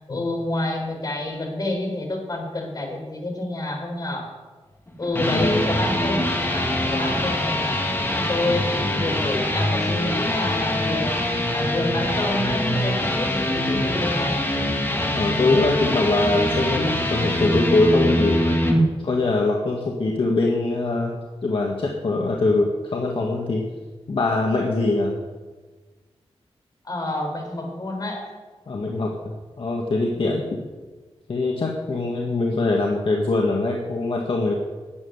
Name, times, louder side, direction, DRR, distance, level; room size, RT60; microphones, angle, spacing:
voice 1, 0.0-4.3 5.0-7.8 8.1-11.2 11.5-14.4 26.8-28.2 30.3-30.5, left 2 dB, 40° left, 0 dB, 4.1 m, -28 dB
sound 1, 4.9-18.8, left 1 dB, 20° left, 1.9 m, -24 dB
voice 2, 5.2-5.8 8.5-8.6 15.1-18.4 19.0-23.6 24.1-25.1 28.7-29.1 29.6-30.4 31.3-34.6, left 2 dB, 60° left, -1 dB, 1.8 m, -23 dB
12.5 x 8.5 x 9.6 m, 1.3 s
wide cardioid pair, 150°, 11 cm